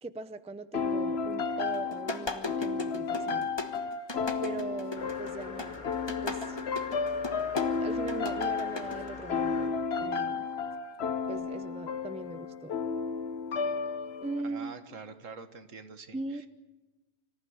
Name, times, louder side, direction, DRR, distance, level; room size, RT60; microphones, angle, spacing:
voice 1, 0.0-3.5 4.4-6.6 7.8-10.5 11.3-12.7 14.2-14.8 16.1-16.5, right 3 dB, 5° right, 12 dB, 0.5 m, -40 dB
sound 1, 0.7-14.4, left 5 dB, 55° left, 1.2 m, -33 dB
sound 2, 1.7-9.1, left 2 dB, 20° left, 1.2 m, -37 dB
sound 3, 4.9-9.9, left 3 dB, 35° left, 2.0 m, -45 dB
voice 2, 14.4-16.5, right 5 dB, 75° right, 9 dB, 1.8 m, -46 dB
25.0 x 14.5 x 9.5 m, 1.2 s
omnidirectional pair, 1.3 m